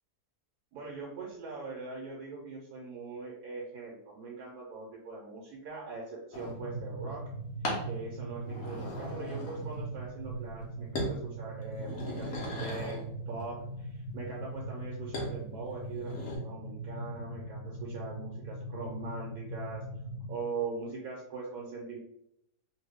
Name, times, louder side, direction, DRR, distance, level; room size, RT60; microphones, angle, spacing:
voice 1, 0.7-7.3 7.8-13.0 13.3-19.9 20.3-22.0, right 4 dB, 75° right, -2 dB, 1.1 m, -41 dB
sound 1, 6.3-6.6 7.6-7.9 8.4-9.9 10.2-10.6 11.0-11.2 11.6-13.1 15.1-15.3 15.8-16.4, left 1 dB, 60° left, 1.1 m, -37 dB
sound 2, 6.5-20.4, right 2 dB, 90° left, 1.2 m, -40 dB
3.0 x 2.2 x 3.4 m, 0.76 s
omnidirectional pair, 1.7 m